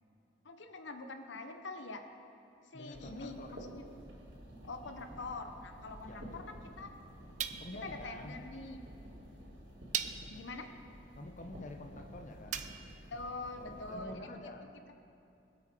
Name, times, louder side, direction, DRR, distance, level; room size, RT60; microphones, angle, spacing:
voice 1, 0.4-2.0 2.7-3.8 4.6-6.9 7.8-8.8 10.3-10.7 13.1-14.3, left 3 dB, 80° left, 7 dB, 0.9 m, -44 dB
voice 2, 2.7-3.7 6.0-6.6 7.6-8.4 11.2-12.6 13.6-14.7, left 2 dB, 40° left, 4 dB, 0.8 m, -48 dB
sound 1, 2.9-14.0, equal, 65° right, 3.1 m, -51 dB
sound 2, 4.8-5.0 7.4-8.0 9.0-9.1 9.9-10.5 12.5-13.0, right 9 dB, 40° right, 0.5 m, -39 dB
24.0 x 8.3 x 4.4 m, 2.6 s
head